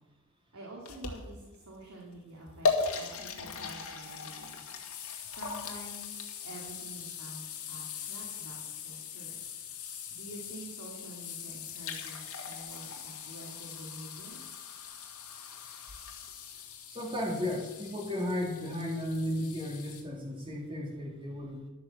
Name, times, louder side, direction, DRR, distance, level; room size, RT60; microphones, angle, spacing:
voice 1, 0.5-4.6 5.2-8.6 8.8-9.4 10.1-14.4, right 1 dB, 85° right, -3 dB, 2.9 m, -48 dB
sound 1, 0.9-1.6 2.1-2.2 2.6-7.9 11.3-11.4 11.6-17.1, left 3 dB, 70° left, 1.9 m, -38 dB
sound 2, 4.0-20.0, left 9 dB, 85° left, 2.2 m, -44 dB
voice 2, 16.9-21.6, left 1 dB, 25° right, 0 dB, 2.6 m, -34 dB
12.0 x 8.9 x 7.2 m, 1.2 s
head